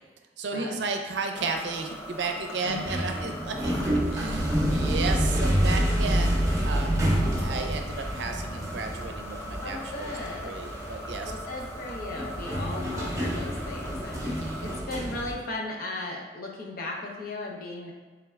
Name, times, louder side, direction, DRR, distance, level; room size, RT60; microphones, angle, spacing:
voice 1, 0.4-3.8 4.1-7.1 7.4-10.2 10.4-11.3 12.6-12.7 14.1-14.7, right 4 dB, 80° right, 4 dB, 0.5 m, -33 dB
sound 1, 1.3-14.8, equal, 15° left, 0.3 m, -40 dB
sound 2, 2.6-15.3, equal, 20° right, 0.7 m, -28 dB
voice 2, 9.6-10.5 11.2-17.9, left 2 dB, 55° left, -2 dB, 0.7 m, -37 dB
3.6 x 3.2 x 3.4 m, 1.3 s
head